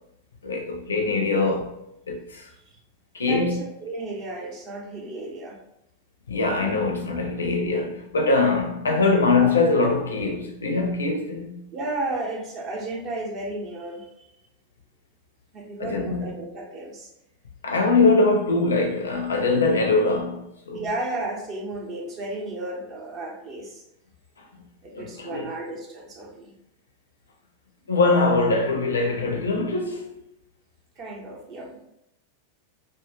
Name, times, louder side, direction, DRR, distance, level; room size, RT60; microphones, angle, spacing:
voice 1, 0.4-1.7 2.1-2.5 3.1-3.6 6.3-11.7 15.8-16.2 17.6-20.8 24.4-24.6 24.9-25.5 27.9-30.1, left 3 dB, 70° left, 0.4 m, -22 dB
voice 2, 3.2-5.6 11.7-14.2 15.5-17.1 20.7-23.8 24.8-26.5 31.0-31.8, right 2 dB, 35° right, 0.7 m, -33 dB
2.5 x 2.3 x 2.2 m
figure-of-eight pair, 90°, 0 cm